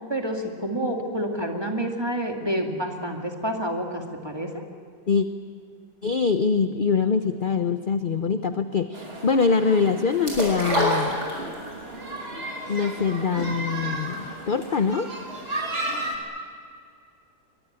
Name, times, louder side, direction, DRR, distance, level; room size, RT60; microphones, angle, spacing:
voice 1, 0.1-4.6, right 1 dB, 15° right, 2 dB, 2.3 m, -28 dB
voice 2, 6.0-11.2 12.7-15.1, left 5 dB, 45° left, 9 dB, 0.7 m, -24 dB
sound 1, 8.9-16.2, right 2 dB, 35° right, 3.0 m, -34 dB
sound 2, 10.2-11.8 12.2-12.3, equal, 75° right, 6.9 m, -24 dB
23.5 x 21.5 x 8.9 m, 2.2 s
omnidirectional pair, 1.7 m